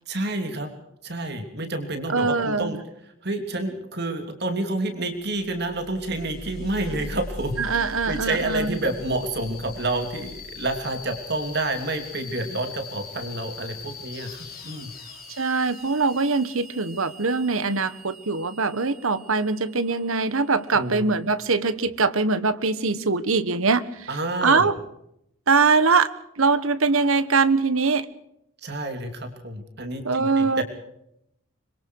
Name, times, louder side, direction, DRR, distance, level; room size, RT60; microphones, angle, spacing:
voice 1, 0.1-0.7 1.0-2.8 3.2-14.9 20.7-21.0 24.1-24.7 28.6-30.6, right 2 dB, 50° right, 6 dB, 3.0 m, -29 dB
voice 2, 2.1-2.8 7.6-8.8 15.4-24.1 24.4-24.8 25.5-28.1 30.0-30.6, right 4 dB, 75° right, 13 dB, 1.3 m, -22 dB
sound 1, 5.3-21.7, left 2 dB, 45° left, 6.2 m, -41 dB
25.0 x 23.0 x 4.7 m, 0.79 s
head